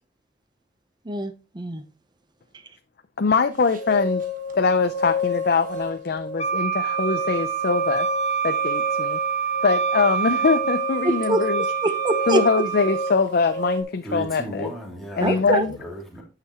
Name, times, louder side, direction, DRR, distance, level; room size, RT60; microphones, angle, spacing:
voice 1, 1.0-1.8 11.0-11.5 11.8-12.4 15.2-15.7, right 2 dB, 25° right, 0.8 m, -24 dB
voice 2, 3.2-4.2 4.5-8.1 8.4-9.2 9.6-11.6 12.3-14.7 15.2-15.7, left 4 dB, 55° left, 0.5 m, -23 dB
sound 1, 3.5-13.8, left 2 dB, 50° right, 1.3 m, -31 dB
Wind instrument woodwind instrument, 6.4-13.1, right 8 dB, 40° left, 1.0 m, -26 dB
voice 3, 14.0-16.2, right 1 dB, ahead, 2.8 m, -35 dB
8.9 x 6.7 x 3.0 m
head